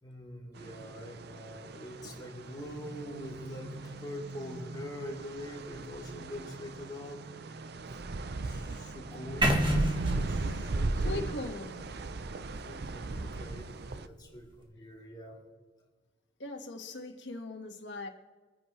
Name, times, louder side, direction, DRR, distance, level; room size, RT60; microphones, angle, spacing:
voice 1, 0.0-7.2 8.4-11.4 12.6-15.4, equal, 25° left, 2.8 m, -44 dB
sound 1, 0.5-14.1, right 2 dB, 60° right, 0.6 m, -38 dB
sound 2, 9.4-13.4, right 1 dB, 25° right, 1.8 m, -32 dB
voice 2, 11.0-11.9 16.4-18.1, left 2 dB, 70° left, 1.8 m, -40 dB
26.0 x 9.9 x 3.3 m
head